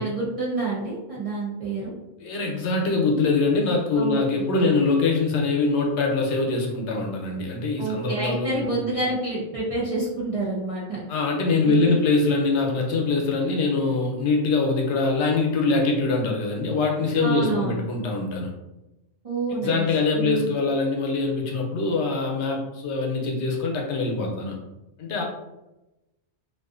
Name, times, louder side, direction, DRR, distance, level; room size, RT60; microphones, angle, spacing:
voice 1, 0.0-1.9 3.9-4.2 4.6-4.7 7.8-11.1 11.6-12.0 17.2-17.8 19.2-19.9 20.2-20.6, right 3 dB, 50° right, -6 dB, 0.4 m, -28 dB
voice 2, 2.2-8.8 11.1-18.5 19.6-24.5 25.0-25.2, left 3 dB, 80° left, 0 dB, 0.9 m, -23 dB
2.5 x 2.4 x 2.4 m, 0.99 s
omnidirectional pair, 1.2 m